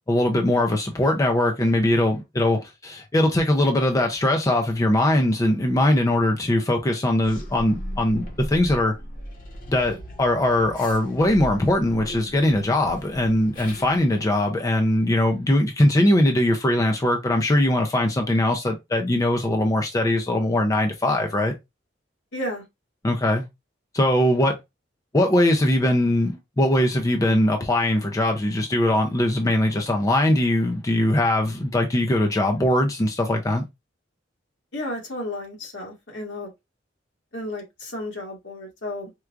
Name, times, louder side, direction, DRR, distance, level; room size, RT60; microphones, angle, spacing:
voice 1, 0.1-8.9 9.7-21.5 23.0-23.4 23.9-24.6 25.1-33.6, left 1 dB, 20° left, 0.4 m, -21 dB
sound 1, 7.2-14.4, equal, 50° left, 1.1 m, -37 dB
voice 2, 22.3-22.6 34.7-36.5 37.3-39.1, left 1 dB, 70° left, 1.5 m, -32 dB
4.4 x 2.3 x 2.3 m
head